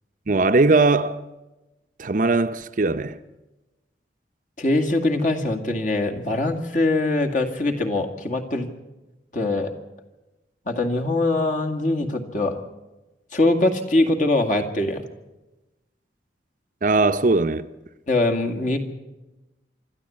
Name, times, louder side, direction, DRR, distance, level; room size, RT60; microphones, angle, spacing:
voice 1, 0.3-1.2 2.0-3.2 16.8-17.7, right 3 dB, 45° right, 0.7 m, -19 dB
voice 2, 4.6-8.7 9.3-9.7 10.7-12.6 13.3-15.1 18.1-18.8, left 2 dB, 45° left, 2.1 m, -22 dB
25.5 x 13.0 x 8.6 m
head